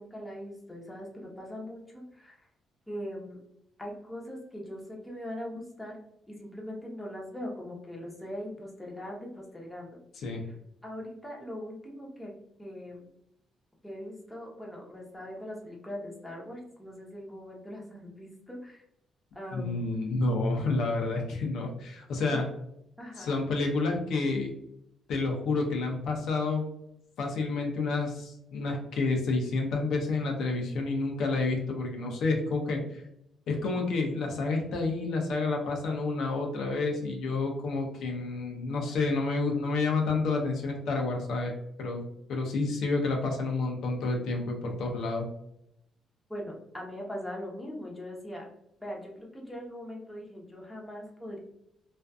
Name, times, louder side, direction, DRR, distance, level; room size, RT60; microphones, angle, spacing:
voice 1, 0.0-2.4 2.9-3.4 3.8-6.0 6.3-10.0 10.3-10.4 10.8-12.3 12.6-13.1 13.8-18.8 19.3-20.0 22.3-22.4 23.0-23.4 46.3-48.4 48.8-51.4, equal, 10° left, -2 dB, 0.8 m, -41 dB
voice 2, 19.5-22.4 23.2-24.5 25.1-26.7 27.2-33.0 33.5-41.5 41.8-42.0 42.3-45.2, left 3 dB, 75° left, 1 dB, 0.5 m, -29 dB
2.5 x 2.4 x 2.3 m, 0.77 s
cardioid pair, 90°, 0 cm